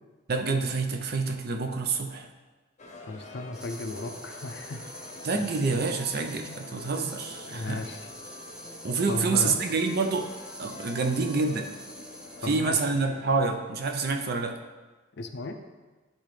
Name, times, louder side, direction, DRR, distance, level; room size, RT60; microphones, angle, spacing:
voice 1, 0.3-2.3 5.2-7.8 8.8-10.3 10.6-11.7 12.4-14.6, right 4 dB, 50° right, 5 dB, 0.6 m, -27 dB
sound 1, 2.8-13.6, left 2 dB, 35° left, 0.8 m, -46 dB
voice 2, 3.1-4.9 6.5-6.6 7.5-8.1 9.1-9.5 12.4-12.8 15.2-15.6, left 2 dB, 60° left, 6 dB, 0.5 m, -35 dB
sound 2, 3.5-12.7, equal, 5° right, 0.5 m, -46 dB
10.0 x 3.8 x 3.3 m, 1.3 s
head